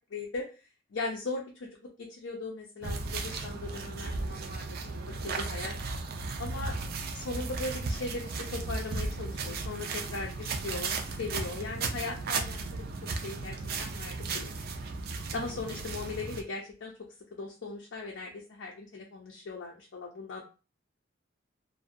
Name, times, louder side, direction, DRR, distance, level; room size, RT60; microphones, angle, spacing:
voice 1, 0.1-0.5 0.9-1.7 2.0-4.6 5.2-5.7 6.4-6.8 7.1-12.8 13.2-14.5 15.3-16.9 17.3-20.4, left 3 dB, 80° left, -2 dB, 0.5 m, -38 dB
sound 1, 2.8-16.4, right 3 dB, 55° right, 0.4 m, -35 dB
2.6 x 2.1 x 2.4 m, 0.33 s
head